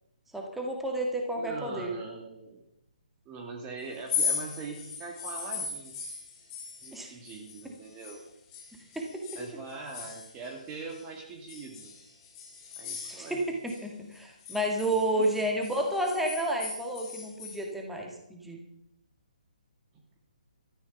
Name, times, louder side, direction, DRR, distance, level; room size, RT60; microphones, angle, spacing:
voice 1, 0.3-1.9 6.9-7.1 8.9-9.2 13.1-18.6, right 1 dB, 5° right, 1 dB, 2.0 m, -31 dB
voice 2, 1.4-2.6 3.2-5.9 6.8-8.2 9.3-11.9 12.8-13.4 15.2-15.3 19.9-20.0, right 4 dB, 20° right, 1 dB, 1.7 m, -42 dB
sound 1, 3.9-8.2 8.5-11.0 11.5-13.8 14.1-17.6, left 6 dB, 20° left, 4.4 m, -38 dB
13.0 x 11.0 x 5.9 m, 0.79 s
figure-of-eight pair, 135°, 5 cm